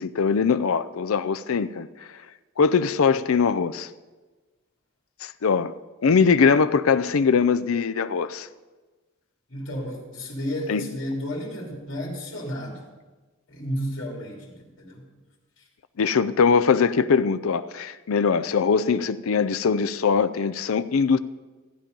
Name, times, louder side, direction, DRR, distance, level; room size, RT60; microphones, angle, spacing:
voice 1, 0.0-1.9 2.6-3.9 5.2-5.7 6.0-8.5 10.7-10.8 16.0-21.2, left 5 dB, 85° left, 0.5 m, -21 dB
voice 2, 9.5-12.8 13.5-15.0, equal, 60° left, 2.9 m, -32 dB
14.5 x 8.8 x 5.3 m
head